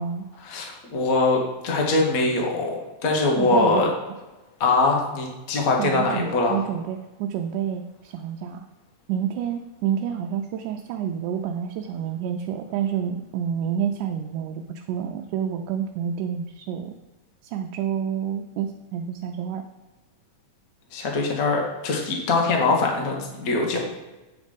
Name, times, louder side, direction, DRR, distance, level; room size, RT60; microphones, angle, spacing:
voice 1, 0.4-3.9 4.6-6.6 20.9-23.8, left 3 dB, 70° left, 0 dB, 0.8 m, -22 dB
voice 2, 3.4-3.9 5.8-8.7 9.1-16.9 17.4-19.6, right 8 dB, 85° right, 4 dB, 2.0 m, -28 dB
8.6 x 4.1 x 5.3 m, 1.1 s
omnidirectional pair, 3.6 m